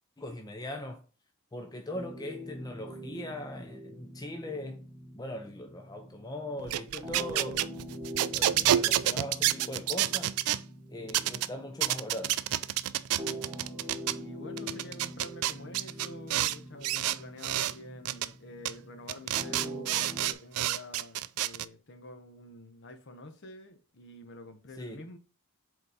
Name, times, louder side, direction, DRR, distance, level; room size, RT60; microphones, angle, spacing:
voice 1, 0.2-1.0 1.5-4.8 5.1-7.7 8.3-10.3 10.9-12.4 24.8-25.0, left 1 dB, 15° left, 0.5 m, -40 dB
sound 1, 1.9-20.3, right 1 dB, 10° right, 1.4 m, -44 dB
sound 2, 6.6-10.6 11.1-11.5 11.8-14.2 14.6-16.6 16.8-17.7 18.1-18.3 18.7-18.8 19.1-21.7, right 13 dB, 80° right, 0.3 m, -29 dB
voice 2, 13.1-13.5 14.2-25.2, left 1 dB, 55° left, 1.0 m, -48 dB
5.2 x 3.9 x 4.8 m
head